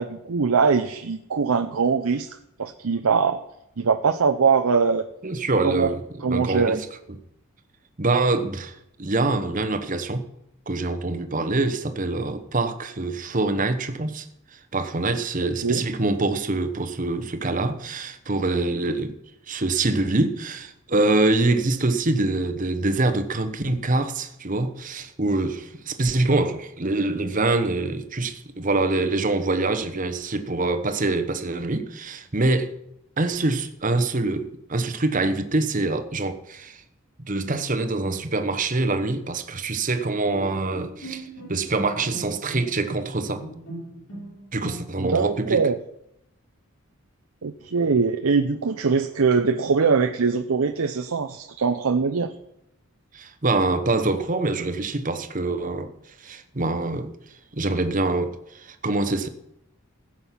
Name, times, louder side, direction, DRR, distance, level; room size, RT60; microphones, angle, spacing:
voice 1, 0.0-3.4 3.8-5.1 5.6-6.8 15.6-15.8 45.0-45.8 47.4-52.3, right 5 dB, 80° right, 0.6 m, -22 dB
voice 2, 5.2-6.0 6.3-7.2 8.0-10.2 10.7-14.3 14.5-19.2 19.5-32.7 33.2-36.8 37.3-43.4 44.5-45.6 53.1-55.9 56.2-57.1 57.5-59.3, right 2 dB, 35° right, 1.0 m, -25 dB
Bowed string instrument, 40.3-45.2, right 1 dB, 75° left, 5.6 m, -39 dB
15.5 x 7.5 x 5.8 m
head